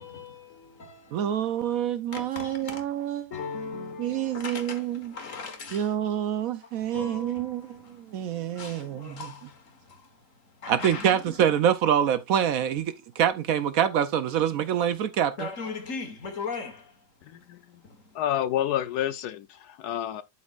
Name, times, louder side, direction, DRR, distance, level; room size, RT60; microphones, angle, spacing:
voice 1, 0.0-1.5 2.1-2.9 3.3-6.0 6.6-11.4 14.8-14.9 15.4-18.2, left 4 dB, 55° left, 1.7 m, -40 dB
voice 2, 1.1-3.3 4.0-5.1 5.7-9.2 10.7-15.3, right 9 dB, 70° right, 0.9 m, -26 dB
voice 3, 17.3-17.8 18.1-20.2, left 11 dB, 75° left, 1.1 m, -29 dB
12.0 x 4.3 x 2.4 m
omnidirectional pair, 1.7 m